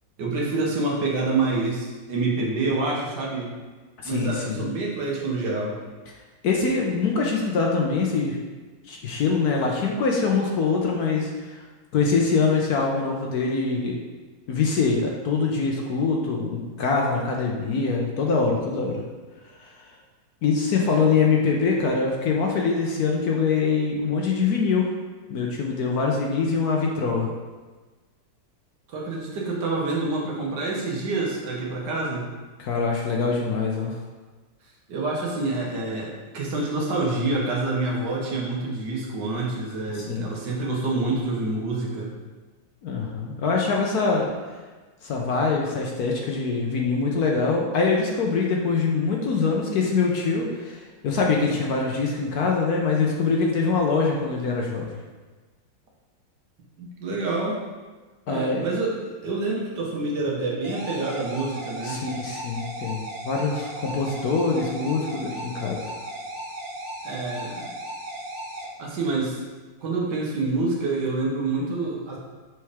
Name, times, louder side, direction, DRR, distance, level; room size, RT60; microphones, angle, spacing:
voice 1, 0.2-3.5 4.0-5.8 20.8-21.0 28.9-32.3 34.9-42.1 56.8-57.6 58.3-62.0 67.0-67.7 68.8-69.4 69.8-72.2, right 3 dB, 65° right, -2 dB, 1.7 m, -27 dB
voice 2, 4.0-4.7 6.4-8.4 8.9-11.6 11.9-14.0 14.5-19.0 19.6-19.7 20.4-24.9 25.3-27.3 32.6-33.9 40.1-40.3 42.8-44.3 45.0-54.9 58.3-58.6 61.8-65.9, left 4 dB, 65° left, -1 dB, 1.1 m, -24 dB
sound 1, 60.6-68.6, right 1 dB, 85° right, 2.0 m, -36 dB
6.2 x 4.6 x 3.5 m, 1.3 s
omnidirectional pair, 2.0 m